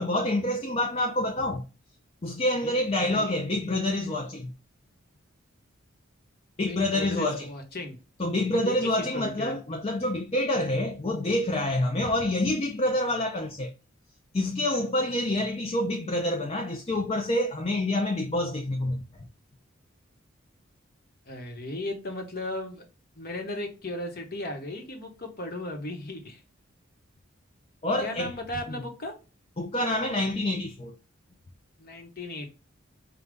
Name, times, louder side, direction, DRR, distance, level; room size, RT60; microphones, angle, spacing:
voice 1, 0.0-1.6 2.2-4.5 6.6-7.5 8.2-13.7 14.3-19.0 27.8-28.3 29.6-31.0, left 1 dB, 30° left, 0.5 m, -27 dB
voice 2, 2.6-3.3 6.7-8.0 8.6-9.5 21.3-22.8 23.2-26.4 28.0-29.1 31.8-32.5, left 1 dB, 45° left, 1.1 m, -36 dB
5.2 x 2.3 x 3.4 m
head